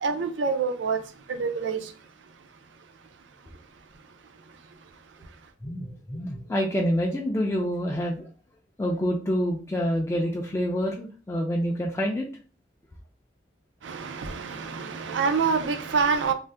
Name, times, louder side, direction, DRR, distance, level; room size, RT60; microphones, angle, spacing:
voice 1, 0.0-1.0 1.3-1.9 13.8-16.3, right 5 dB, 90° right, 0.4 m, -26 dB
voice 2, 5.6-8.2 8.8-12.3, equal, 15° left, 0.3 m, -27 dB
2.6 x 2.1 x 3.3 m
head